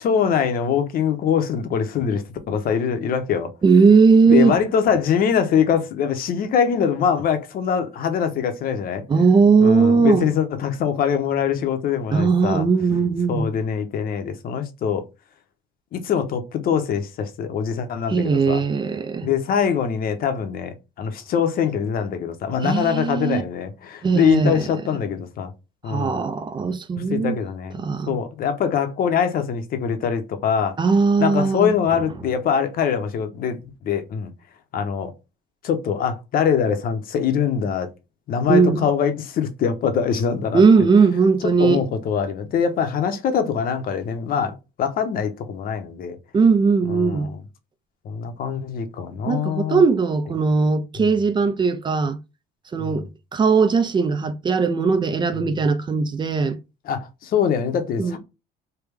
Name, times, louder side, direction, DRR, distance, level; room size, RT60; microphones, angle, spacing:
voice 1, 0.0-3.5 4.3-9.0 9.6-12.7 13.3-15.0 15.9-18.6 19.2-25.5 25.8-26.2 27.0-27.7 28.1-30.8 31.2-34.3 34.7-35.1 35.6-37.9 38.3-40.6 41.4-46.2 46.9-47.4 48.0-49.8 52.8-53.1 55.4-55.5 56.9-58.2, left 7 dB, 60° left, 0.8 m, -23 dB
voice 2, 3.6-4.6 9.1-10.3 12.1-13.5 18.1-19.3 22.6-23.4 24.0-24.7 25.9-27.3 27.8-28.2 30.8-31.7 38.5-38.9 40.5-41.8 46.3-47.3 49.3-52.2 52.7-56.6 58.0-58.2, right 5 dB, 25° right, 0.5 m, -18 dB
3.3 x 2.2 x 3.4 m
cardioid pair, 110°, 17 cm